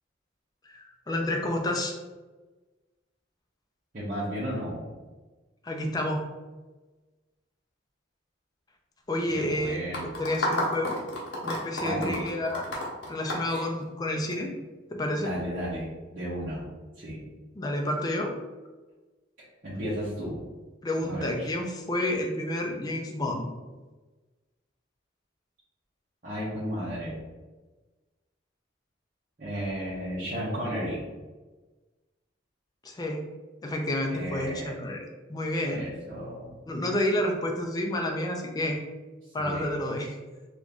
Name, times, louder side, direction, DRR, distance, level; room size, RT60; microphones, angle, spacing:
voice 1, 0.6-2.0 5.6-6.2 9.1-9.8 10.2-11.0 11.4-12.7 13.1-14.5 14.9-15.3 17.6-18.3 20.8-23.5 32.8-33.3 33.6-35.9 36.7-38.8 39.3-40.2, left 1 dB, 20° left, 2 dB, 0.4 m, -30 dB
voice 2, 3.9-4.8 9.3-10.2 11.8-12.2 13.4-13.6 15.2-16.7 17.0-17.3 19.6-20.4 21.0-21.5 26.2-27.2 29.4-31.0 34.1-34.7 35.7-36.5 39.4-39.8, equal, 45° right, -10 dB, 0.9 m, -34 dB
sound 1, 9.9-14.3, left 1 dB, 70° left, 0.9 m, -31 dB
3.0 x 2.5 x 3.5 m, 1.3 s
head